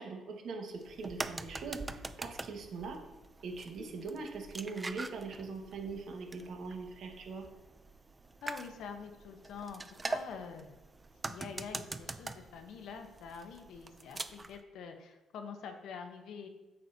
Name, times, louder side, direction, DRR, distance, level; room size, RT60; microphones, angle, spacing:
voice 1, 0.0-3.0 3.4-7.4, right 4 dB, 75° right, 2 dB, 1.5 m, -41 dB
sound 1, 0.8-14.6, right 3 dB, 25° right, 0.4 m, -44 dB
voice 2, 8.4-10.7 11.2-16.5, left 6 dB, 80° left, 5 dB, 0.9 m, -46 dB
8.8 x 6.4 x 2.8 m, 1.0 s
cardioid pair, 90°, 0 cm